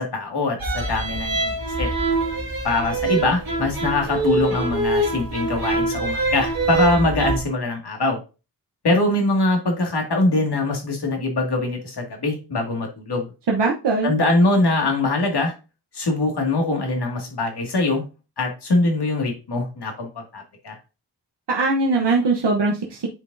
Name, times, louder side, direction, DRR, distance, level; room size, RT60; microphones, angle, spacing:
voice 1, 0.0-1.9 2.6-8.2 8.8-13.3 14.0-15.5 15.9-18.0 18.4-20.8, left 2 dB, 70° left, 2 dB, 2.1 m, -22 dB
sound 1, 0.6-7.4, right 2 dB, 55° right, 2.2 m, -24 dB
voice 2, 13.5-14.1 21.5-23.1, right 3 dB, 80° right, 0 dB, 1.0 m, -21 dB
8.7 x 5.0 x 2.6 m, 0.30 s
wide cardioid pair, 80°, 41 cm